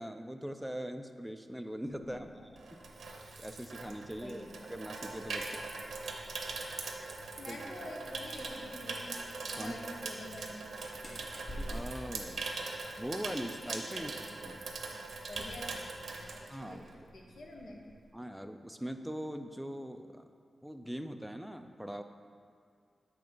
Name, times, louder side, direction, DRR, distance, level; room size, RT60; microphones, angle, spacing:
voice 1, 0.0-2.3 2.7-2.8 3.4-5.7 7.5-7.6 9.5-9.7 11.7-12.5 13.0-14.1 14.4-14.7 16.5-16.8 18.1-20.3 20.6-22.0, equal, ahead, 7 dB, 0.4 m, -41 dB
voice 2, 2.0-2.5 4.2-4.6 7.1-9.3 9.5-10.6 13.9-14.3 14.9-15.0 15.3-17.8, left 1 dB, 70° left, 0 dB, 0.9 m, -48 dB
Water tap faucet / Sink (filling or washing), 2.0-17.1 17.4-17.7, right 3 dB, 85° right, 0.7 m, -42 dB
sound 1, 10.4-14.1 14.4-14.7 15.0-15.7 16.0-16.2, equal, 40° left, 1.2 m, -45 dB
8.0 x 3.4 x 5.2 m, 2.3 s
wide cardioid pair, 110°, 0 cm